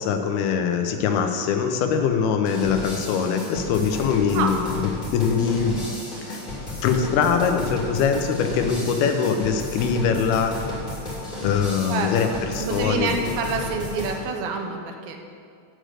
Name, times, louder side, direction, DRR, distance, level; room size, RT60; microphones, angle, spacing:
voice 1, 0.0-5.8 6.3-6.4 6.8-10.5 11.4-13.3, left 6 dB, 90° left, 5 dB, 2.8 m, -23 dB
sound 1, 2.5-14.2, left 1 dB, 15° left, 1.5 m, -33 dB
voice 2, 11.9-15.2, right 4 dB, 85° right, 3 dB, 2.8 m, -27 dB
7.7 x 6.6 x 7.8 m, 2.2 s
omnidirectional pair, 4.3 m